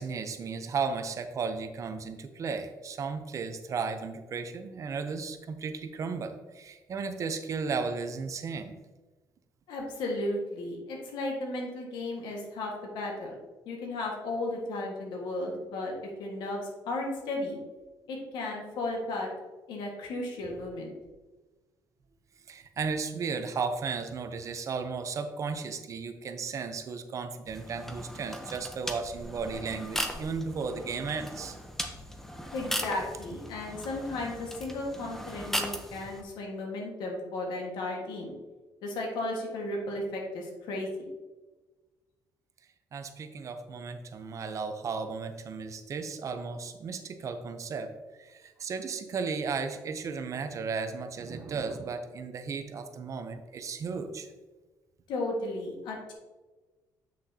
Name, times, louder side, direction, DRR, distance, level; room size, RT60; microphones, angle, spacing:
voice 1, 0.0-8.7 22.5-31.6 42.9-47.9 48.2-54.3, right 5 dB, 45° right, 8 dB, 0.7 m, -35 dB
voice 2, 9.7-13.3 13.6-15.9 16.2-17.6 18.1-19.3 19.7-20.9 32.5-38.3 38.8-40.9 55.1-56.1, left 2 dB, 90° left, 0 dB, 1.6 m, -34 dB
sound 1, 27.5-36.2, equal, 5° left, 0.7 m, -38 dB
8.2 x 6.3 x 2.8 m, 1.2 s
cardioid pair, 125°, 8 cm